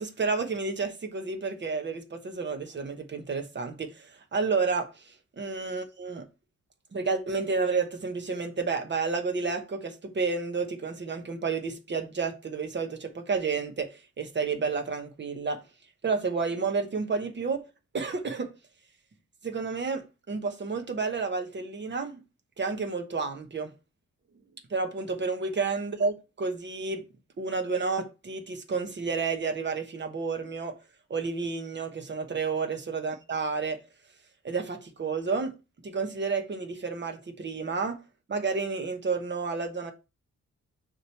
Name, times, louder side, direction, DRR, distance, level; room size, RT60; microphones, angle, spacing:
voice 1, 0.0-6.2 6.9-15.6 16.0-17.6 17.9-18.5 19.4-22.2 22.6-23.7 24.7-27.0 27.4-30.7 31.1-33.8 34.4-35.5 35.8-38.0 38.3-39.9, right 4 dB, 35° right, 1.1 m, -30 dB
6.4 x 3.1 x 5.6 m
wide cardioid pair, 130°, 30 cm